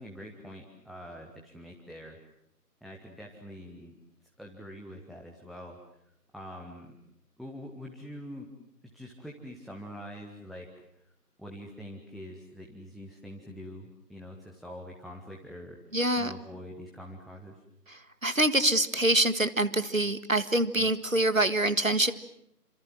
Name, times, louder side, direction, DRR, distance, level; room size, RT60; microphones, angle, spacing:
voice 1, 0.0-2.2 2.8-3.9 4.4-5.8 6.3-6.9 7.4-8.5 8.9-10.7 10.9-11.0 11.4-15.8 16.2-17.6 20.8-20.9, equal, ahead, 0 dB, 1.1 m, -44 dB
voice 2, 15.9-16.3 17.9-22.1, right 1 dB, 55° right, 13 dB, 2.0 m, -25 dB
29.0 x 26.5 x 7.6 m, 0.77 s
figure-of-eight pair, 180°, 48 cm